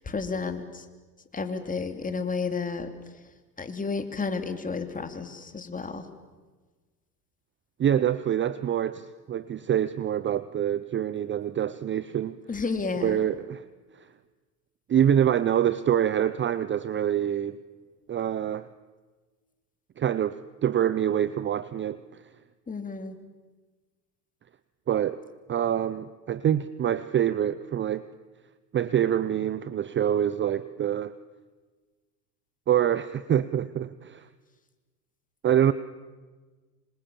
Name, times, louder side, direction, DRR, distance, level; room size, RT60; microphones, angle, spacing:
voice 1, 0.0-0.8 1.3-2.9 3.6-6.0 12.5-13.2 22.7-23.1, left 4 dB, 15° left, 7 dB, 3.0 m, -31 dB
voice 2, 7.8-12.4 13.0-13.6 14.9-17.6 18.1-18.7 20.0-22.0 24.9-25.2 25.5-28.0 28.7-31.1 32.7-34.3 35.4-35.7, right 10 dB, 25° right, 15 dB, 0.8 m, -25 dB
26.5 x 25.5 x 7.2 m, 1.3 s
hypercardioid pair, 95°, 50 cm